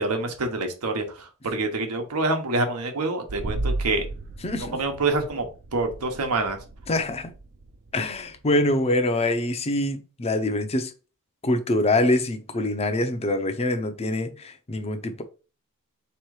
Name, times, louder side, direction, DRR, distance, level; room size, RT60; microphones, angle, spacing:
voice 1, 0.0-4.1 4.7-6.6, right 2 dB, 90° right, 1.0 m, -26 dB
sound 1, 3.3-8.9, right 2 dB, 45° right, 0.5 m, -35 dB
voice 2, 4.4-4.8 6.9-7.3 7.9-10.9 11.4-15.2, left 1 dB, 30° left, 0.6 m, -25 dB
3.6 x 3.0 x 4.8 m
head